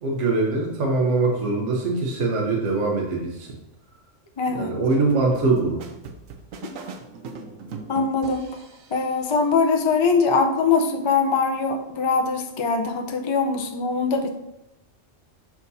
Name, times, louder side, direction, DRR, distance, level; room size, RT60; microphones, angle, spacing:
voice 1, 0.0-3.6 4.5-5.8, right 3 dB, 65° right, -1 dB, 1.3 m, -23 dB
voice 2, 4.4-4.7 7.9-8.5 8.9-14.3, left 4 dB, 35° left, 3 dB, 0.5 m, -22 dB
sound 1, 4.9-9.2, right 4 dB, 85° right, 1.1 m, -40 dB
7.2 x 6.0 x 2.7 m, 0.85 s
omnidirectional pair, 1.3 m